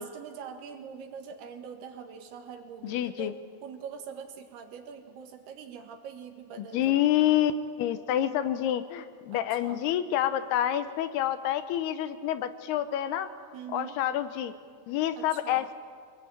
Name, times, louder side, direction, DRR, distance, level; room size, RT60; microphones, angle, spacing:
voice 1, 0.0-7.1 9.3-9.8 13.5-14.0 15.2-15.7, right 7 dB, 80° right, 5 dB, 3.7 m, -43 dB
voice 2, 2.8-3.3 6.6-7.5 7.8-13.3 13.7-14.5 14.9-15.7, left 12 dB, 85° left, 11 dB, 2.9 m, -28 dB
25.0 x 20.5 x 9.0 m, 2.1 s
omnidirectional pair, 4.6 m